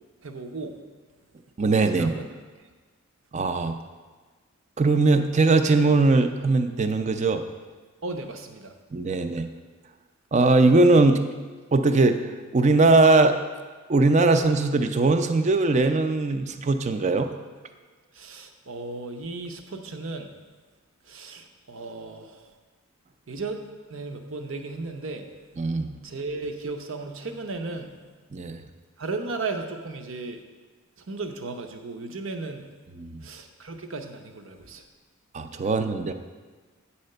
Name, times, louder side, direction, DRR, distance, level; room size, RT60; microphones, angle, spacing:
voice 1, 0.2-0.8 1.9-2.2 8.0-8.7 18.1-20.3 21.1-22.5 23.3-23.6 23.9-25.3 26.0-27.9 29.0-30.4 31.1-32.7 33.2-34.8, right 3 dB, 65° right, 6 dB, 0.7 m, -35 dB
voice 2, 1.6-2.1 3.3-3.8 4.8-7.4 8.9-9.5 10.3-11.2 11.7-13.4 13.9-17.3 25.6-25.9 28.3-28.6 33.0-33.2 35.3-36.1, right 3 dB, 35° right, 8 dB, 0.4 m, -20 dB
8.7 x 4.3 x 6.6 m, 1.4 s
head